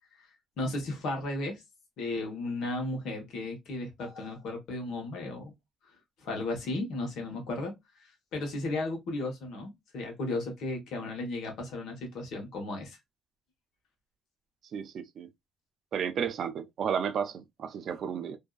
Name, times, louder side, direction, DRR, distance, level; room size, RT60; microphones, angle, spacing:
voice 1, 0.6-1.6 2.0-5.5 6.2-7.8 8.3-13.0, left 2 dB, 80° left, 1.1 m, -34 dB
voice 2, 14.7-15.3 15.9-18.4, right 7 dB, 65° right, 0.4 m, -32 dB
2.6 x 2.3 x 2.3 m
cardioid pair, 90°, 0 cm